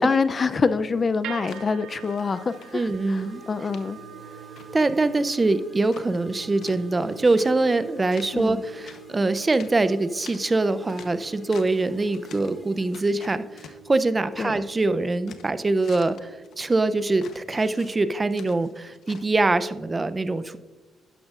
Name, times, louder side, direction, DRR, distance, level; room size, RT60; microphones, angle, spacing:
voice 1, 0.0-4.0 8.3-8.6 14.4-14.5, left 4 dB, 35° left, 14 dB, 0.4 m, -25 dB
sound 1, 0.9-3.1 3.4-3.8 4.2-6.4 6.6-7.8 8.1-8.6 8.9-11.9 12.1-12.6 12.9-14.8 15.1-19.2, left 7 dB, 70° left, 0.8 m, -48 dB
sound 2, 1.2-17.4, right 11 dB, 85° right, 0.5 m, -46 dB
sound 3, 2.2-14.0, left 1 dB, 10° left, 3.5 m, -49 dB
voice 2, 2.7-3.4 4.7-13.4 13.9-20.6, right 2 dB, 25° right, 13 dB, 0.5 m, -23 dB
11.5 x 11.0 x 2.4 m, 1.2 s
cardioid pair, 90°, 0 cm